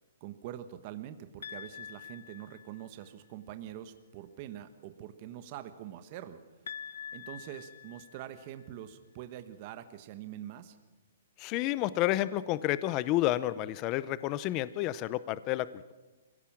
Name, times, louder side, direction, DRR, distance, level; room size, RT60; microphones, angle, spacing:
voice 1, 0.2-6.4 7.1-10.8, right 11 dB, 35° right, 10 dB, 1.1 m, -44 dB
sound 1, 1.4-3.1 6.7-8.7, left 8 dB, 85° left, 0.7 m, -45 dB
voice 2, 11.4-15.9, left 15 dB, 25° left, 17 dB, 0.6 m, -30 dB
24.0 x 16.5 x 7.3 m, 1.2 s
hypercardioid pair, 160°, 0 cm